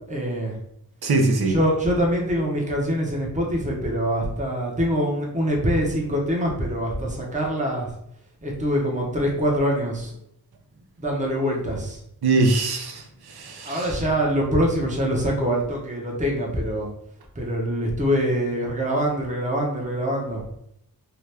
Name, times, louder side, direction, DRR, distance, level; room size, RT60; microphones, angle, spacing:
voice 1, 0.1-0.5 1.5-7.9 8.4-10.1 11.0-12.0 13.6-16.9 17.4-20.4, equal, 20° right, -1 dB, 0.7 m, -24 dB
voice 2, 1.0-1.6 12.2-14.0, right 3 dB, 80° right, 3 dB, 0.6 m, -22 dB
2.8 x 2.3 x 3.3 m, 0.74 s
wide cardioid pair, 55°, 38 cm